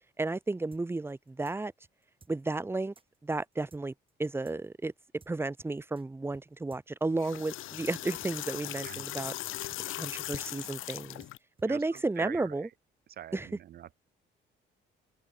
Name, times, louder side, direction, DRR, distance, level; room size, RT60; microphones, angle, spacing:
voice 1, 0.2-1.7 2.3-2.9 3.2-3.9 4.2-4.9 5.3-9.3 9.9-11.2 11.6-12.7 13.3-13.5, right 2 dB, 10° right, 0.7 m, -33 dB
sound 1, 0.7-6.0 6.3-6.4 6.7-12.4, right 4 dB, 25° right, 4.8 m, -60 dB
sound 2, 7.0-11.4, left 16 dB, 85° left, 1.5 m, -39 dB
voice 2, 11.7-12.7 13.2-14.0, right 11 dB, 50° right, 0.4 m, -44 dB
cardioid pair, 90°, 20 cm